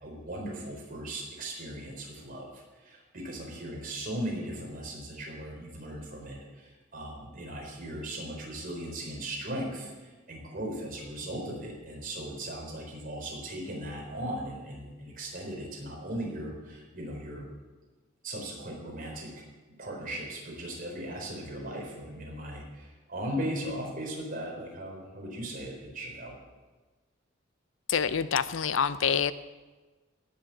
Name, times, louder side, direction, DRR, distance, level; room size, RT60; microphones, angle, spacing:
voice 1, 0.0-17.5 18.2-19.4 19.8-26.4, right 1 dB, 45° right, -1 dB, 4.3 m, -38 dB
voice 2, 27.9-29.3, left 7 dB, 80° left, 14 dB, 0.6 m, -26 dB
17.0 x 7.5 x 7.7 m, 1.3 s
head